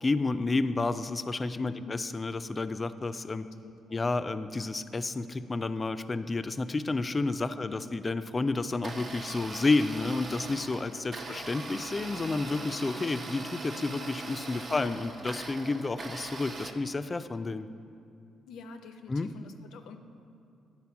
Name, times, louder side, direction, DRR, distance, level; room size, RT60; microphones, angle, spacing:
voice 1, 0.0-3.4 3.9-17.7 19.1-19.3, left 3 dB, 30° left, 12 dB, 0.3 m, -30 dB
voice 2, 1.6-2.1 3.4-4.1 7.5-7.9 11.2-11.4 14.7-15.1 18.5-20.0, left 4 dB, 80° left, 7 dB, 0.5 m, -48 dB
Domestic sounds home sounds, 8.7-16.7, right 3 dB, 50° right, 0.7 m, -41 dB
9.7 x 4.3 x 5.8 m, 2.5 s
supercardioid pair, 70°, 0 cm